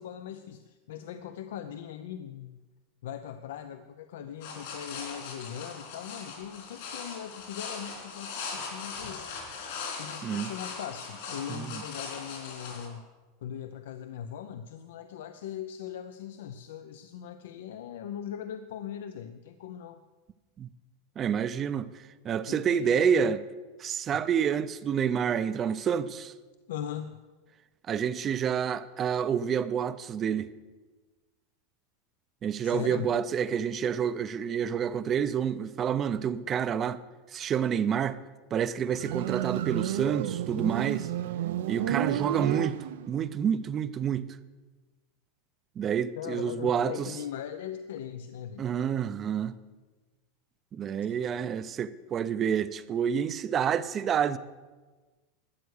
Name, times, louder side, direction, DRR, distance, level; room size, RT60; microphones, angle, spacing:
voice 1, 0.0-2.6 3.0-9.4 10.0-13.0 13.4-20.0 22.5-23.3 26.7-27.2 32.6-33.1 46.2-48.7, left 9 dB, 85° left, 0.6 m, -40 dB
sound 1, 4.4-12.9, left 5 dB, 65° left, 3.7 m, -40 dB
voice 2, 11.5-11.8 20.6-20.7 21.2-23.4 23.8-26.3 27.9-30.5 32.4-37.0 37.3-38.2 38.5-41.1 41.7-42.8 43.1-44.4 45.8-47.1 48.6-49.5 50.7-54.4, right 8 dB, 25° right, 0.5 m, -28 dB
Motorcycle, 38.9-43.3, right 12 dB, 80° right, 0.5 m, -31 dB
12.5 x 8.2 x 6.5 m
supercardioid pair, 155°, 0 cm